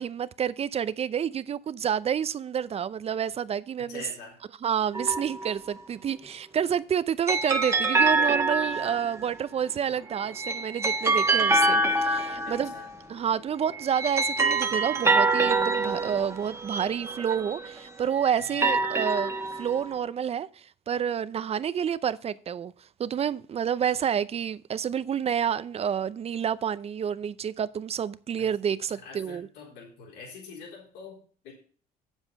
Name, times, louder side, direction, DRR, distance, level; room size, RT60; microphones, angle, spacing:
voice 1, 0.0-4.1 4.6-12.7 13.1-22.7 23.0-29.5, right 8 dB, 35° right, 0.5 m, -29 dB
voice 2, 3.9-4.4 12.4-12.9 18.4-18.9 28.4-28.5 28.9-31.5, left 4 dB, 85° left, 3.9 m, -45 dB
sound 1, 4.9-5.7 7.3-9.2 10.2-13.0 13.7-17.8 18.4-20.0, right 3 dB, 15° right, 1.3 m, -26 dB
8.1 x 7.2 x 5.3 m
cardioid pair, 110°, 17 cm